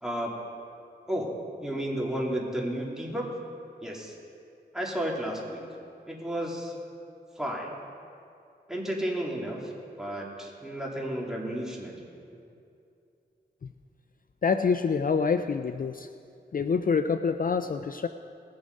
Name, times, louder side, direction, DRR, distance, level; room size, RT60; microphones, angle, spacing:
voice 1, 0.0-0.3 1.1-1.3 1.6-3.3 3.8-4.1 4.7-5.6 6.1-6.7 7.4-7.7 8.7-9.7 10.0-11.9, right 1 dB, 5° right, -3 dB, 2.9 m, -32 dB
voice 2, 14.4-16.1 16.5-18.1, left 5 dB, 50° left, 9 dB, 0.4 m, -26 dB
19.0 x 7.2 x 5.3 m, 2.5 s
cardioid pair, 55°, 19 cm